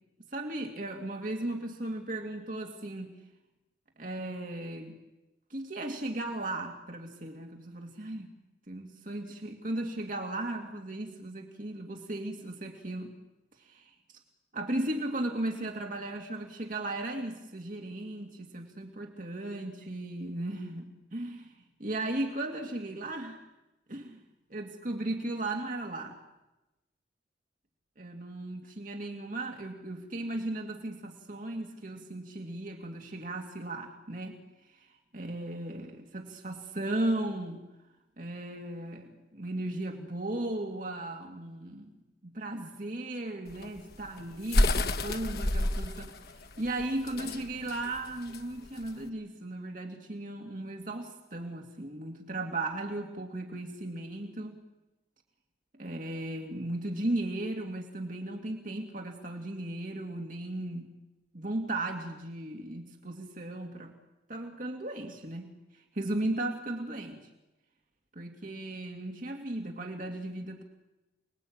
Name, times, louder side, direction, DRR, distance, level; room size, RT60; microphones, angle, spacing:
voice 1, 0.3-3.1 4.0-5.0 5.5-8.3 8.7-13.2 13.6-13.9 14.5-21.5 21.8-23.4 23.9-24.2 24.5-26.2 28.0-37.7 38.2-41.9 42.2-54.6 55.7-60.9 61.3-63.9 64.3-67.3 68.1-70.6, right 1 dB, 50° right, 2 dB, 2.6 m, -36 dB
sound 1, 43.5-49.1, left 1 dB, 60° left, 1.3 m, -30 dB
28.5 x 21.0 x 8.9 m, 1.0 s
head